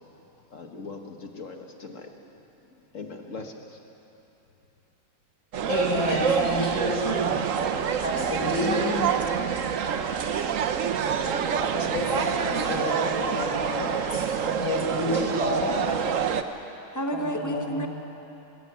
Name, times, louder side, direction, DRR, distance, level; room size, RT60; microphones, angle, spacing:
voice 1, 0.5-2.1 2.9-3.5, left 4 dB, 45° left, 3 dB, 1.4 m, -40 dB
sound 1, 5.5-16.4, right 7 dB, 65° right, 0.8 m, -27 dB
voice 2, 5.7-7.4 8.0-8.8 11.7-15.8 17.1-17.9, left 1 dB, 60° left, -3 dB, 5.5 m, -29 dB
voice 3, 8.6-9.2 16.9-17.9, equal, 15° left, 3 dB, 0.7 m, -30 dB
21.0 x 16.0 x 8.2 m, 3.0 s
omnidirectional pair, 2.4 m